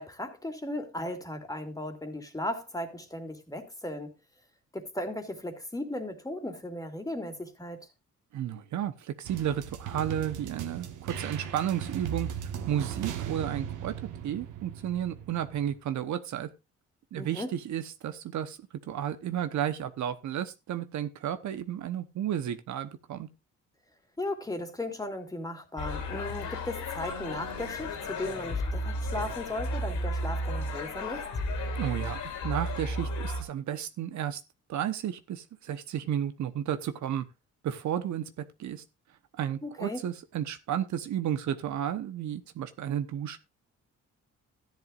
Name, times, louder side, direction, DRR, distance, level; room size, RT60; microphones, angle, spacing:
voice 1, 0.0-4.1 4.7-7.8 17.2-17.5 24.2-31.3 39.6-40.0, left 1 dB, 10° left, 2.6 m, -36 dB
voice 2, 8.3-12.3 12.7-13.9 14.2-16.5 17.1-18.6 18.9-23.3 31.8-34.4 34.7-37.2 37.6-38.8 39.4-43.4, right 10 dB, 70° right, 1.0 m, -32 dB
sound 1, 9.2-15.8, right 8 dB, 85° right, 1.7 m, -38 dB
sound 2, 25.8-33.4, left 1 dB, 75° left, 3.3 m, -33 dB
14.0 x 10.5 x 2.5 m
cardioid pair, 90°, 30 cm